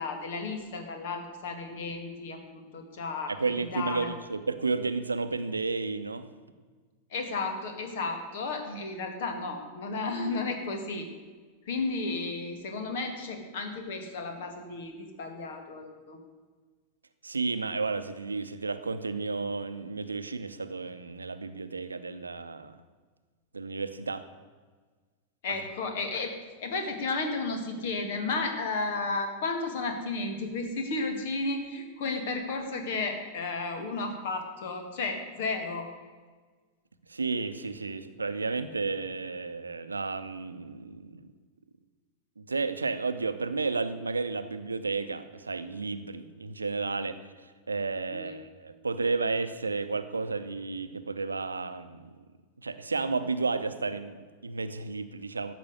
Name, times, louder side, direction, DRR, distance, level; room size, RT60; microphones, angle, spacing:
voice 1, 0.0-4.1 7.1-11.1 11.7-16.2 25.4-26.3 26.6-35.9 48.1-48.4, left 3 dB, 55° left, 5 dB, 2.1 m, -33 dB
voice 2, 3.3-6.3 17.2-22.8 23.5-24.2 37.1-41.3 42.4-52.1 52.6-55.5, right 4 dB, 80° right, 11 dB, 0.7 m, -32 dB
13.5 x 6.0 x 8.0 m, 1.4 s
figure-of-eight pair, 90°, 0 cm